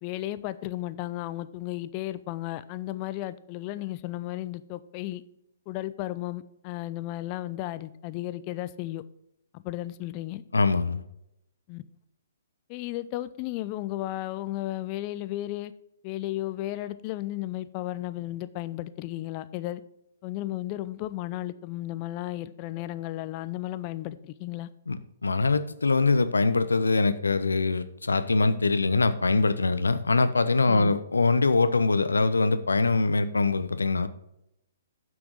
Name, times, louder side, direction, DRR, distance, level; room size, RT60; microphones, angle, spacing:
voice 1, 0.0-5.2 5.7-9.0 9.5-10.4 11.7-11.8 12.7-15.7 16.0-19.8 20.2-24.7 30.7-30.9, left 15 dB, 35° left, 14 dB, 0.6 m, -34 dB
voice 2, 10.5-11.0 24.9-25.0 25.2-34.1, left 3 dB, 80° left, 12 dB, 0.8 m, -23 dB
9.3 x 6.1 x 4.7 m, 0.81 s
figure-of-eight pair, 125°, 0 cm